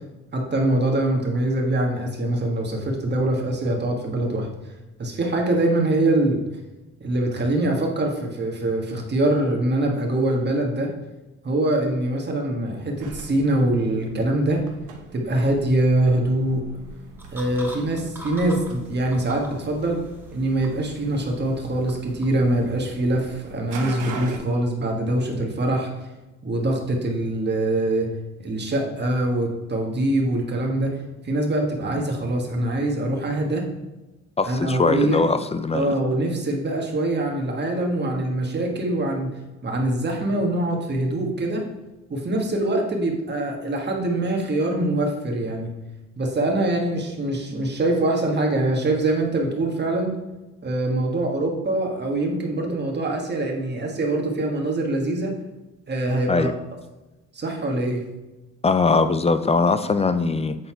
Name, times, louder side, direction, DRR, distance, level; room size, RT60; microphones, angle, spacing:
voice 1, 0.3-4.5 5.0-6.4 7.0-10.9 11.4-14.6 15.1-16.6 17.3-20.0 20.3-25.9 26.4-28.1 28.4-31.0 31.2-33.7 34.4-35.2 35.7-39.3 39.6-41.6 42.1-45.7 46.2-50.1 50.6-55.3 55.9-56.5 57.3-58.0, right 1 dB, 35° right, 1 dB, 1.7 m, -23 dB
sound 1, 13.0-24.4, right 4 dB, 90° right, 1.1 m, -42 dB
sound 2, 17.2-23.8, equal, 10° right, 2.3 m, -44 dB
voice 2, 34.4-35.9 56.3-56.5 58.6-60.6, left 4 dB, 20° left, 11 dB, 0.4 m, -21 dB
8.0 x 4.1 x 4.5 m, 1.1 s
cardioid pair, 90°, 30 cm